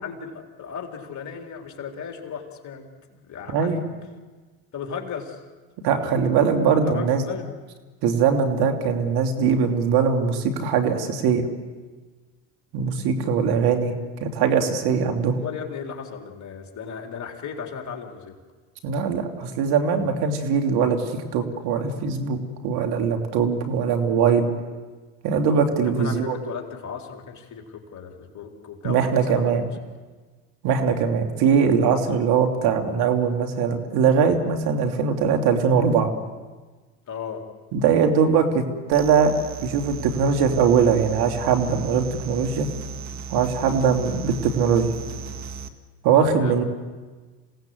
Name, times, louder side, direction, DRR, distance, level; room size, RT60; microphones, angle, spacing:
voice 1, 0.0-3.9 4.7-5.4 6.3-6.5 6.8-7.5 15.4-18.4 25.8-29.7 37.1-37.5 46.4-46.6, left 6 dB, 40° left, 2 dB, 4.0 m, -36 dB
voice 2, 5.8-7.2 8.0-11.4 12.7-13.9 14.2-15.4 18.8-24.5 25.2-26.4 28.8-29.7 30.6-36.1 37.7-38.6 38.9-39.3 39.6-42.7 43.3-44.9 46.0-46.6, right 6 dB, 60° right, 5 dB, 2.9 m, -21 dB
sound 1, 38.9-45.7, right 5 dB, 40° right, 1.9 m, -36 dB
27.5 x 18.0 x 8.0 m, 1.3 s
hypercardioid pair, 85°, 43 cm